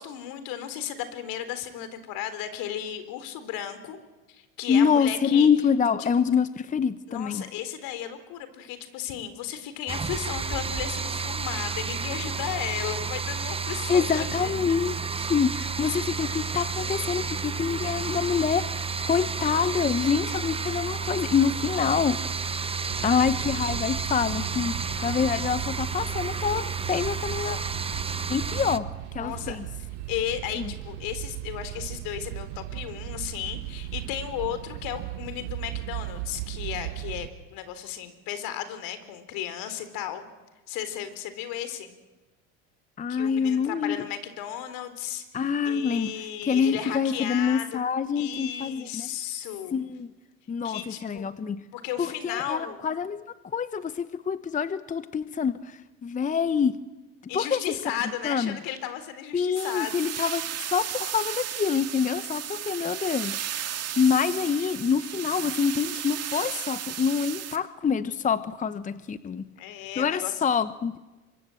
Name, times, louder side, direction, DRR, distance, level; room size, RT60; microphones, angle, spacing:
voice 1, 0.0-4.0 4.3-5.5 6.0-6.1 7.1-14.6 29.2-29.6 30.1-40.2 40.7-41.9 43.1-47.8 48.2-49.8 50.6-51.2 51.7-52.8 57.3-60.2 69.6-70.3, left 10 dB, 65° left, 11 dB, 3.9 m, -34 dB
voice 2, 4.7-7.4 13.9-22.7 23.0-27.6 28.3-28.9 29.1-29.6 30.6-30.7 43.0-44.0 45.3-49.1 49.7-50.1 50.5-51.6 52.0-53.2 53.5-56.8 57.2-57.6 58.2-58.6 59.3-63.4 64.0-69.5 70.0-71.0, left 6 dB, 20° left, 14 dB, 0.9 m, -26 dB
sound 1, 9.9-28.8, right 5 dB, 15° right, 1.0 m, -31 dB
sound 2, 22.9-37.3, right 15 dB, 70° right, 1.7 m, -37 dB
sound 3, 59.6-67.6, right 10 dB, 40° right, 2.2 m, -34 dB
24.5 x 24.0 x 7.9 m, 1.1 s
supercardioid pair, 95°, 37 cm